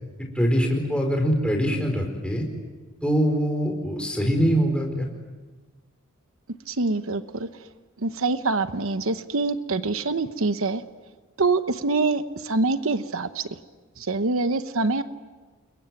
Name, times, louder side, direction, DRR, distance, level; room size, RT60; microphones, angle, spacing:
voice 1, 0.2-2.4 3.0-5.1, equal, 5° left, 2 dB, 4.8 m, -23 dB
voice 2, 6.7-7.5 8.0-10.8 11.4-13.5 14.0-15.0, right 3 dB, 70° right, 11 dB, 1.0 m, -25 dB
29.0 x 22.5 x 9.2 m, 1.3 s
head